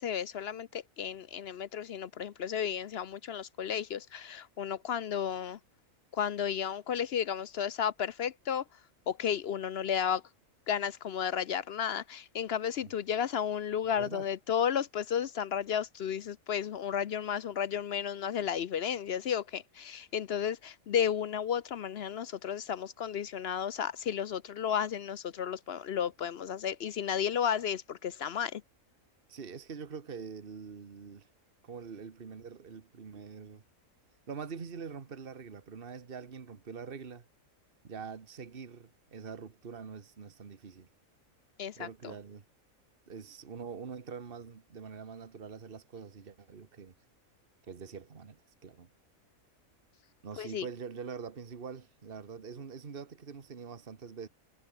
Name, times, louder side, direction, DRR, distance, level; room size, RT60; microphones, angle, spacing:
voice 1, 0.0-5.6 6.1-8.6 9.1-10.2 10.7-28.6 41.6-42.1 50.4-50.6, left 8 dB, 60° left, 0.8 m, -33 dB
voice 2, 13.9-14.3 29.3-31.3 31.6-33.6 34.3-37.3 37.8-40.9 41.8-42.4 43.1-46.9 47.7-48.9 50.2-54.3, right 6 dB, 40° right, 1.6 m, -44 dB
omnidirectional pair, 1.5 m